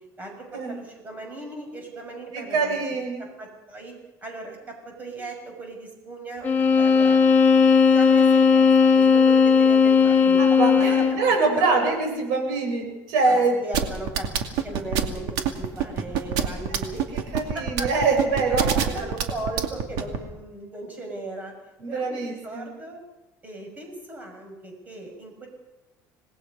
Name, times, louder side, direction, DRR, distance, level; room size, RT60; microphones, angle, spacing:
voice 1, 0.2-2.8 3.2-3.9 4.2-6.5 6.8-7.3 7.9-8.7 8.9-10.4 10.8-12.3 13.2-14.3 14.6-17.0 17.5-17.9 18.5-21.5 21.9-23.0 23.4-25.5, right 2 dB, 20° right, 2 dB, 6.6 m, -37 dB
voice 2, 2.3-3.2 10.4-13.7 17.3-18.7 21.8-22.7, right 3 dB, 90° right, 2 dB, 7.7 m, -24 dB
sound 1, 6.4-11.3, left 6 dB, 25° left, 1.8 m, -17 dB
sound 2, 13.7-20.2, right 8 dB, 75° right, 2.4 m, -24 dB
27.0 x 19.5 x 5.5 m, 1.0 s
cardioid pair, 155°, 7 cm